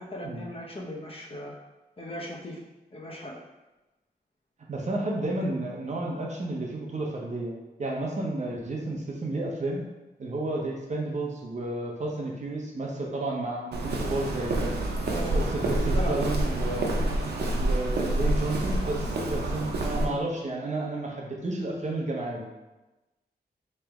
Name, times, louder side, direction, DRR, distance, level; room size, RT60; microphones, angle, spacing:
voice 1, 0.0-1.5 2.0-2.6 2.9-3.4 15.0-15.5 15.9-16.1, equal, 35° left, -2 dB, 0.7 m, -37 dB
voice 2, 4.7-7.5 7.8-9.8 10.2-14.7 15.3-17.0 17.6-22.5, right 2 dB, 45° right, -2 dB, 0.7 m, -31 dB
Walk footsteps, 13.7-20.1, right 1 dB, 85° right, 0.5 m, -27 dB
3.2 x 3.0 x 3.5 m, 1.1 s
wide cardioid pair, 115°, 17 cm